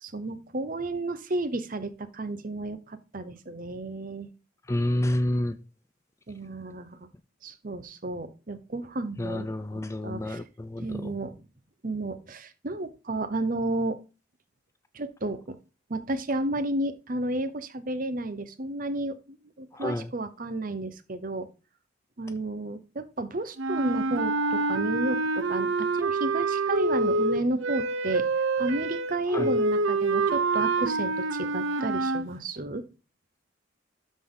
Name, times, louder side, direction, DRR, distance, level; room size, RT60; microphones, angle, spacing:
voice 1, 0.0-4.3 6.3-7.0 7.4-9.5 9.7-10.4 10.8-11.4 11.8-14.0 14.9-15.6 15.9-19.2 19.6-21.5 22.2-28.3 28.6-32.8, right 2 dB, 45° right, 0.8 m, -32 dB
voice 2, 4.7-5.6 9.2-11.1 19.7-20.1 29.3-29.5, left 1 dB, 15° left, 0.3 m, -29 dB
sound 1, 23.6-32.3, right 3 dB, 85° right, 0.7 m, -26 dB
12.5 x 4.2 x 3.8 m
head